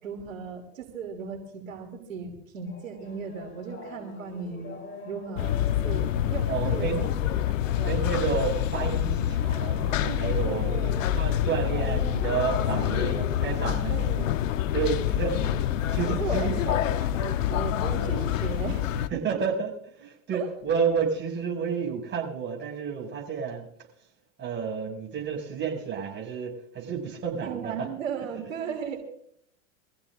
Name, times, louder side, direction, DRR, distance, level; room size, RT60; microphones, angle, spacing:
voice 1, 0.0-4.8 5.0-5.6 5.8-7.1 7.7-8.0 10.1-11.2 11.7-12.0 12.5-14.4 16.1-18.8 19.1-19.2 20.3-20.5 27.4-29.0, right 6 dB, 90° right, 3 dB, 3.1 m, -36 dB
sound 1, 2.6-12.6, left 4 dB, 30° left, 4.0 m, -47 dB
sound 2, 5.4-19.1, left 11 dB, 80° left, 1.0 m, -27 dB
voice 2, 6.5-7.4 7.8-10.7 11.1-14.0 14.7-16.8 18.9-23.7 24.4-27.9 28.6-28.7, right 6 dB, 30° right, 0 dB, 6.7 m, -31 dB
23.5 x 15.5 x 2.6 m, 0.67 s
hypercardioid pair, 110°, 39 cm